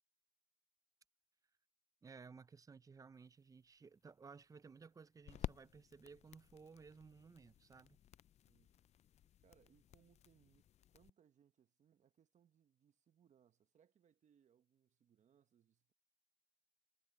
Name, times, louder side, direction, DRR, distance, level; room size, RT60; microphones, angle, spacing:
voice 1, 2.0-8.0, right 5 dB, 20° right, 0.4 m, -58 dB
sound 1, 3.2-11.1, left 11 dB, 40° left, 0.4 m, -53 dB
voice 2, 8.5-8.8 9.4-10.6 10.9-15.9, right 8 dB, 45° right, 1.3 m, -73 dB
cardioid pair, 110°, 17 cm